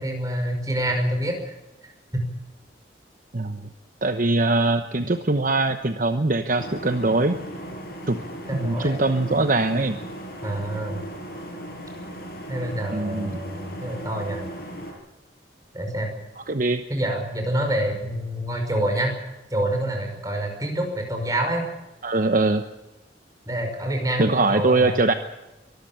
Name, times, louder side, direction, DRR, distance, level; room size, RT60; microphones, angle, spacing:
voice 1, 0.0-1.6 2.1-2.2 8.5-9.0 10.4-11.0 12.5-14.5 15.7-16.1 16.9-19.2 19.5-21.6 23.5-25.1, right 1 dB, 20° right, 3 dB, 5.7 m, -27 dB
voice 2, 4.0-7.4 8.1-8.2 8.5-10.0 12.9-13.3 16.5-16.8 22.0-22.6 24.2-25.1, right 2 dB, 50° right, 8 dB, 1.0 m, -22 dB
sound 1, 6.6-14.9, right 1 dB, 60° left, 6.8 m, -37 dB
24.0 x 13.5 x 9.0 m, 1.0 s
head